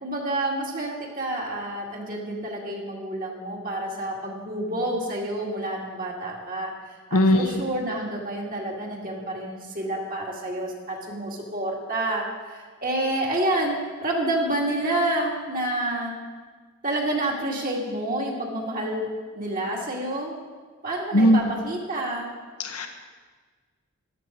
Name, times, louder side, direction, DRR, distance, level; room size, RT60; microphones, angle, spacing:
voice 1, 0.0-16.1 16.8-19.1 19.4-20.3 20.8-22.3, right 1 dB, 40° right, -2 dB, 2.2 m, -29 dB
voice 2, 7.1-7.5 21.1-21.5 22.6-22.9, equal, 85° left, 5 dB, 1.2 m, -18 dB
13.5 x 11.5 x 4.5 m, 1.5 s
head